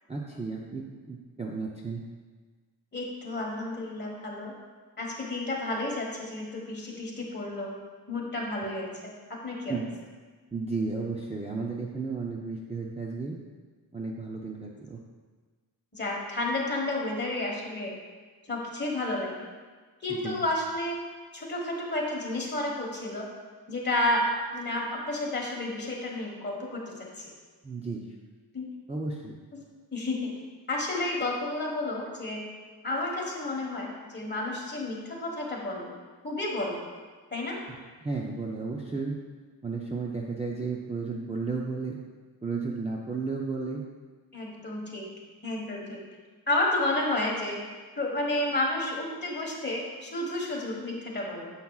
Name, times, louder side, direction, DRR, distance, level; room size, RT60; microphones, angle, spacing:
voice 1, 0.1-2.0 9.7-9.8 10.5-13.4 13.9-15.0 20.1-20.4 27.6-28.0 28.9-29.4 38.0-39.2 39.6-42.0 42.4-43.8, right 4 dB, 15° right, -2 dB, 0.5 m, -33 dB
voice 2, 2.9-4.5 5.0-7.7 8.1-8.9 9.4-9.8 15.9-17.9 18.5-19.5 20.0-21.0 21.3-23.3 23.7-24.2 24.5-27.3 28.5-28.7 29.5-29.6 29.9-30.3 30.7-32.4 32.8-35.9 36.2-36.8 37.3-37.6 44.3-45.1 45.4-46.0 46.5-47.6 48.0-51.5, left 2 dB, 25° left, -2 dB, 1.4 m, -31 dB
9.6 x 7.1 x 2.4 m, 1.4 s
wide cardioid pair, 175°, 40 cm